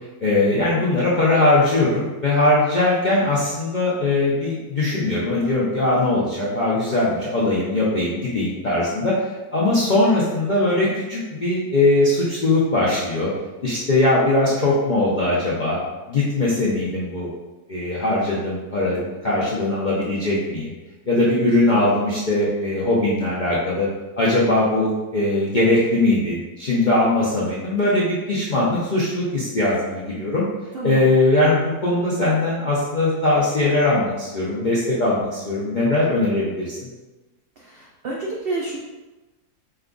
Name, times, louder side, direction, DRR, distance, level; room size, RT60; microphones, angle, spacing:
voice 1, 0.2-9.1 9.5-13.3 13.6-15.8 16.1-17.3 17.7-20.7 21.1-23.9 24.2-30.4 30.8-36.9, left 2 dB, 65° left, -7 dB, 0.4 m, -20 dB
voice 2, 37.6-38.8, right 2 dB, 85° right, -3 dB, 0.5 m, -29 dB
4.2 x 2.3 x 3.7 m, 1.1 s
omnidirectional pair, 1.7 m